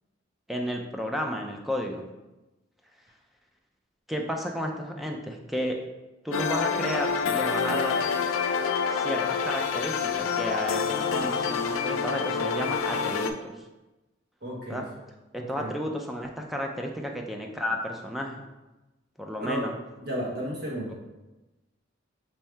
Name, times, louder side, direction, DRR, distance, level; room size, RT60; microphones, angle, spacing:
voice 1, 0.5-2.0 4.1-5.8 6.2-8.1 8.9-13.6 14.7-14.8 15.3-18.5 19.2-19.7, equal, ahead, 1 dB, 0.4 m, -32 dB
sound 1, 6.3-13.3, left 6 dB, 85° left, 0.3 m, -27 dB
voice 2, 14.4-14.8 15.5-15.7 19.4-19.6 20.0-20.9, equal, 55° right, -4 dB, 1.1 m, -33 dB
3.3 x 2.7 x 4.4 m, 1.1 s
head